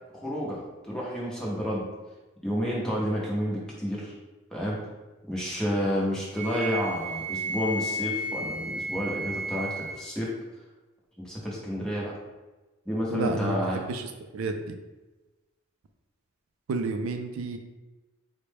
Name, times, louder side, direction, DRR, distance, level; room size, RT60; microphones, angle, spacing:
voice 1, 0.1-0.6 0.9-1.9 2.4-4.1 4.5-4.8 5.3-10.3 11.2-12.1 12.9-13.8, equal, 5° left, -5 dB, 0.7 m, -30 dB
Wind instrument woodwind instrument, 6.3-10.0, right 1 dB, 35° right, 0.9 m, -33 dB
voice 2, 13.1-14.7 16.7-17.6, right 3 dB, 85° right, 6 dB, 0.4 m, -31 dB
4.3 x 2.1 x 3.3 m, 1.1 s
head